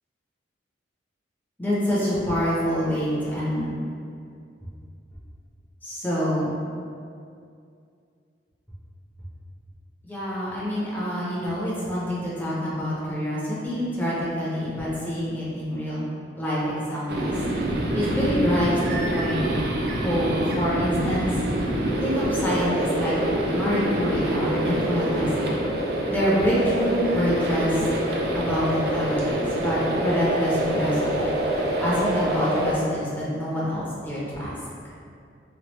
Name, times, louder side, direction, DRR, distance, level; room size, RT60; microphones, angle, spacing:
voice 1, 1.6-3.7 5.8-6.5 10.0-16.0 16.3-17.3 17.6-19.5 20.0-21.3 22.0-23.1 23.5-25.6 26.1-27.8 28.3-31.3 31.8-34.5, equal, 10° left, -8 dB, 0.7 m, -26 dB
sound 1, 17.1-32.7, right 1 dB, 60° right, 0.4 m, -26 dB
3.2 x 2.3 x 3.0 m, 2.4 s
head